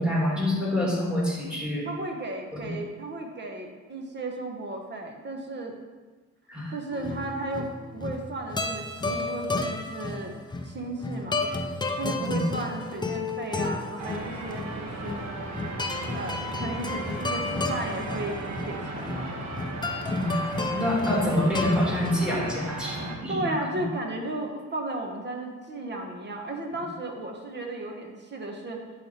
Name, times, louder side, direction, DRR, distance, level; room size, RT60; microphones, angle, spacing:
voice 1, 0.0-1.9 2.5-2.6 6.5-6.7 12.2-12.4 20.1-23.5, left 1 dB, 5° right, -4 dB, 2.3 m, -27 dB
voice 2, 1.8-5.8 6.7-10.3 10.6-11.4 12.0-15.2 16.1-19.3 23.3-28.8, right 2 dB, 35° right, 2 dB, 1.3 m, -34 dB
sound 1, 6.9-22.5, left 3 dB, 15° left, 0.6 m, -32 dB
sound 2, 14.0-23.2, right 2 dB, 60° right, 1.5 m, -36 dB
10.5 x 3.5 x 4.4 m, 1.3 s
cardioid pair, 90°, 30 cm